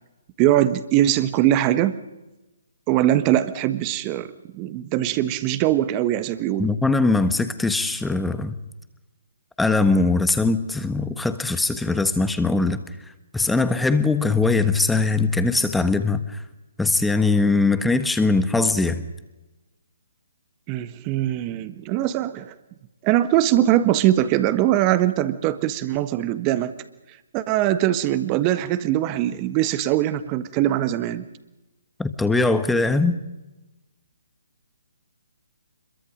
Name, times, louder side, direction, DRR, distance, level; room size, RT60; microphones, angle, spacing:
voice 1, 0.4-2.0 2.9-6.7 20.7-22.5 23.0-26.7 27.3-31.2, right 13 dB, 25° right, 12 dB, 1.4 m, -21 dB
voice 2, 6.6-8.6 9.6-12.8 13.3-16.4 16.8-19.0 32.0-33.2, left 3 dB, 5° left, 10 dB, 1.3 m, -21 dB
26.0 x 22.5 x 5.2 m, 1.1 s
figure-of-eight pair, 140°, 0 cm